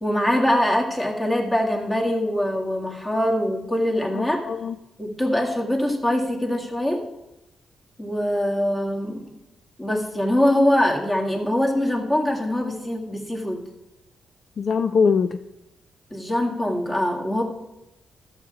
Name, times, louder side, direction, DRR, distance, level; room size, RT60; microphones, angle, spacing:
voice 1, 0.0-4.4 5.0-7.0 8.0-9.2 9.8-13.6 16.1-17.4, left 1 dB, 15° left, 0 dB, 2.0 m, -23 dB
voice 2, 4.1-4.8 14.6-15.4, left 5 dB, 50° left, 10 dB, 0.4 m, -22 dB
12.5 x 7.3 x 4.8 m, 0.93 s
cardioid pair, 115°, 0 cm